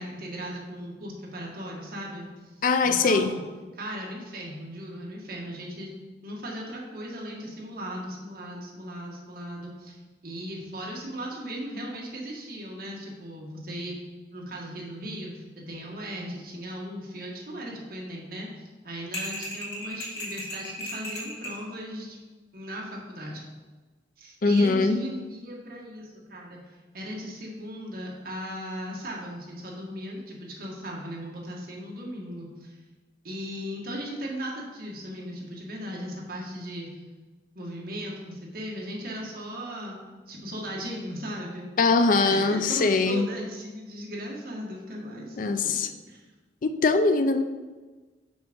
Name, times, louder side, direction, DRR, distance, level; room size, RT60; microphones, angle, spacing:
voice 1, 0.0-2.3 2.8-3.4 3.7-5.9 6.2-13.9 14.3-22.2 22.5-23.4 24.2-32.8 33.2-36.9 37.5-40.0 40.3-41.7 42.1-45.8 46.1-46.2, equal, 55° right, -3 dB, 1.7 m, -37 dB
voice 2, 2.6-3.3 24.4-25.0 41.8-43.3 45.4-45.9 46.6-47.4, left 3 dB, 50° left, 9 dB, 0.4 m, -22 dB
sound 1, 19.1-21.6, equal, 90° left, 2.3 m, -35 dB
6.1 x 4.8 x 5.3 m, 1.3 s
head